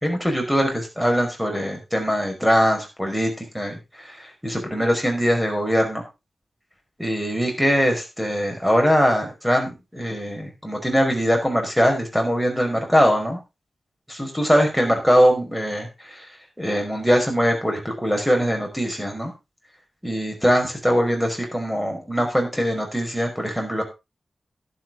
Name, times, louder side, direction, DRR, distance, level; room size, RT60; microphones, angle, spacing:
voice 1, 0.0-6.0 7.0-13.4 14.1-16.3 16.6-19.3 20.0-23.8, equal, ahead, 3 dB, 5.4 m, -22 dB
12.0 x 11.0 x 3.7 m, 0.26 s
wide cardioid pair, 115°, 0 cm